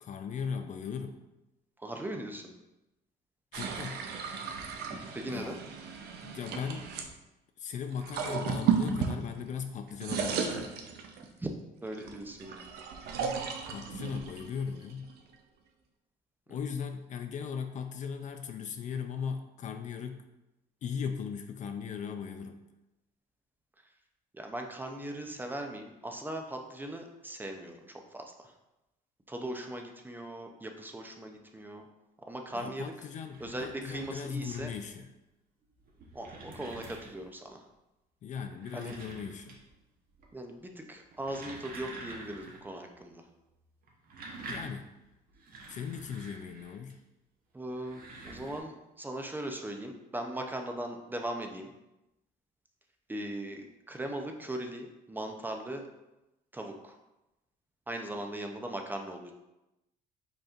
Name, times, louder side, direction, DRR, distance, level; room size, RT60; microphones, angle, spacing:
voice 1, 0.0-1.2 3.5-4.0 5.3-5.7 6.2-6.9 7.6-10.7 13.7-15.1 16.5-20.2 20.8-22.6 32.5-35.1 38.2-39.6 44.4-44.9 45.7-47.0, left 6 dB, 45° left, 7 dB, 0.4 m, -38 dB
voice 2, 1.8-2.5 4.9-5.6 11.4-11.5 11.8-12.7 16.5-16.6 24.3-28.5 29.3-31.9 32.3-33.1 33.4-34.7 36.1-37.6 38.7-38.9 40.3-43.2 47.5-51.7 53.1-55.9 56.5-57.0 57.9-59.3, right 1 dB, 10° right, 3 dB, 0.5 m, -39 dB
sound 1, 3.5-7.1 7.9-9.6 9.9-11.4 11.9-15.3, right 6 dB, 75° right, 0.6 m, -34 dB
sound 2, 33.0-35.0 35.7-37.4 38.4-39.8 40.1-40.6 41.0-42.7 43.0-43.1 43.8-46.9 47.7-48.6, right 2 dB, 60° right, 1.0 m, -47 dB
5.2 x 4.2 x 2.5 m, 0.96 s
cardioid pair, 110°, 17 cm